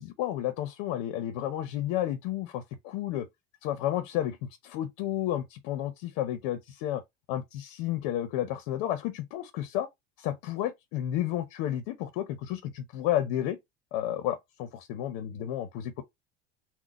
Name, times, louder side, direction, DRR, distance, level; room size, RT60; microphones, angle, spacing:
voice 1, 0.0-3.3 3.6-7.0 7.3-9.9 10.2-13.6 13.9-16.0, left 12 dB, 60° left, 0.8 m, -32 dB
4.0 x 2.3 x 4.0 m
hypercardioid pair, 95°, 39 cm